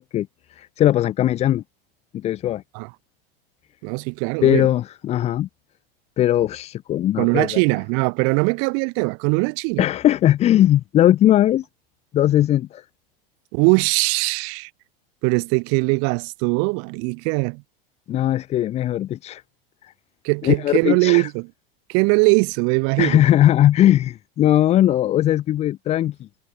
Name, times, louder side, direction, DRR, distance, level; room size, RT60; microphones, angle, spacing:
voice 1, 0.0-1.6 2.1-2.6 4.4-5.5 6.2-7.6 9.8-11.7 12.1-12.8 18.1-19.4 19.8-19.9 20.4-21.3 23.0-26.3, left 12 dB, 20° left, 0.6 m, -19 dB
voice 2, 3.8-4.7 7.2-9.8 13.5-14.7 15.2-17.6 20.2-21.4 21.9-23.2, right 37 dB, 50° right, 4.0 m, -21 dB
supercardioid pair, 150°, 29 cm